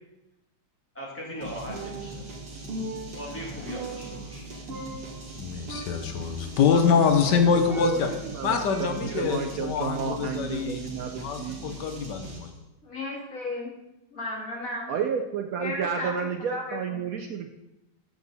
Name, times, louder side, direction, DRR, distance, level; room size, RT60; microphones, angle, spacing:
voice 1, 0.9-2.2 3.1-4.4, equal, 5° left, -4 dB, 2.4 m, -39 dB
sound 1, 1.4-12.6, right 2 dB, 90° right, 2.6 m, -41 dB
Percussion, 1.7-2.4 2.7-4.4 4.7-5.4 5.7-6.2 6.7-8.3 8.7-9.4, right 2 dB, 40° right, 1.0 m, -39 dB
voice 2, 5.4-8.1 8.4-10.8 11.2-12.5, left 6 dB, 75° left, 6 dB, 1.4 m, -25 dB
voice 3, 7.2-11.6 14.9-17.5, right 7 dB, 65° right, 5 dB, 0.9 m, -32 dB
voice 4, 12.8-13.7 14.1-14.9 15.6-17.0, left 2 dB, 50° left, -2 dB, 2.5 m, -34 dB
9.4 x 7.7 x 4.0 m, 0.95 s
omnidirectional pair, 1.9 m